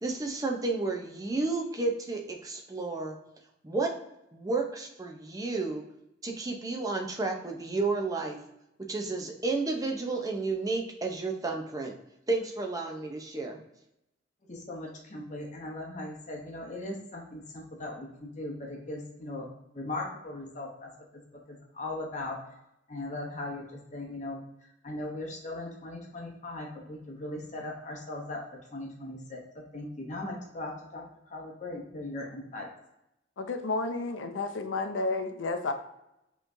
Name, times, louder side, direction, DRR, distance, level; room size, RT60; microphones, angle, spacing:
voice 1, 0.0-3.2 3.6-3.9 4.3-5.8 6.2-8.4 8.9-11.9 12.3-13.6, right 3 dB, 20° right, 2 dB, 0.6 m, -31 dB
voice 2, 14.5-19.5 19.7-21.2 21.5-22.4 22.9-24.4 24.8-28.4 28.7-32.7, left 2 dB, 40° left, 0 dB, 0.8 m, -39 dB
voice 3, 33.4-35.7, left 3 dB, 85° left, 6 dB, 0.5 m, -31 dB
5.5 x 3.1 x 2.6 m, 0.86 s
head